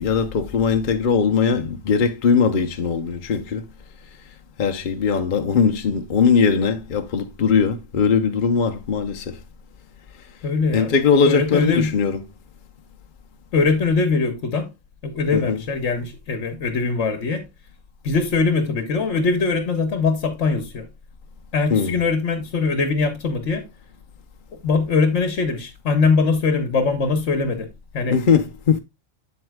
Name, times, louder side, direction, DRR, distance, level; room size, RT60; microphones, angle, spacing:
voice 1, 0.0-3.7 4.6-9.4 10.7-12.2 15.3-15.6 21.7-22.0 28.1-28.8, left 6 dB, 45° left, 0.8 m, -20 dB
voice 2, 10.4-10.9 11.2-11.9 13.5-14.7 15.0-17.5 18.0-20.9 21.5-23.7 24.5-28.2, left 4 dB, 60° left, 1.3 m, -22 dB
8.0 x 7.7 x 2.2 m
omnidirectional pair, 1.4 m